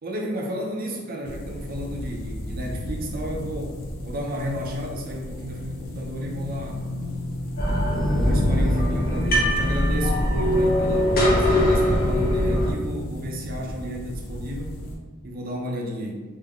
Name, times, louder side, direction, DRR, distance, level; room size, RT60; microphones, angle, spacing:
voice 1, 0.0-6.9 8.1-14.8 15.2-16.2, equal, 45° right, 1 dB, 0.5 m, -32 dB
sound 1, 1.2-15.0, left 1 dB, 85° left, 0.6 m, -34 dB
sound 2, 7.6-12.7, equal, 45° left, 0.5 m, -21 dB
3.3 x 2.1 x 3.5 m, 1.3 s
head